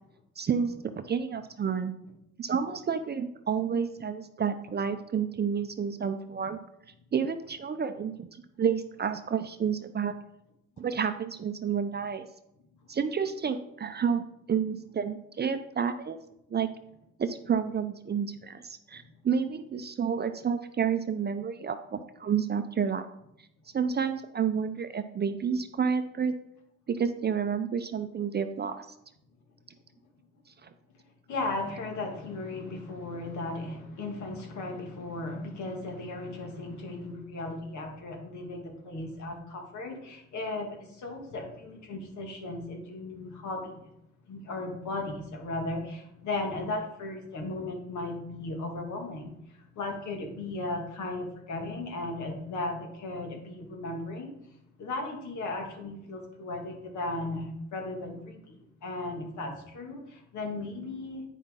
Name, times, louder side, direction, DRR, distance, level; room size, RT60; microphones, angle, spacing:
voice 1, 0.4-1.9 2.4-6.6 7.1-8.3 8.6-10.1 10.8-12.3 12.9-14.2 14.5-16.2 16.5-16.7 17.2-23.1 23.7-26.3 26.9-28.9 30.6-30.7, right 7 dB, 35° right, 9 dB, 0.5 m, -30 dB
voice 2, 31.3-43.8 44.3-49.3 49.8-54.3 54.8-58.6 58.8-61.2, left 2 dB, 70° left, 2 dB, 1.9 m, -36 dB
9.2 x 5.7 x 3.7 m, 0.82 s
cardioid pair, 90°, 30 cm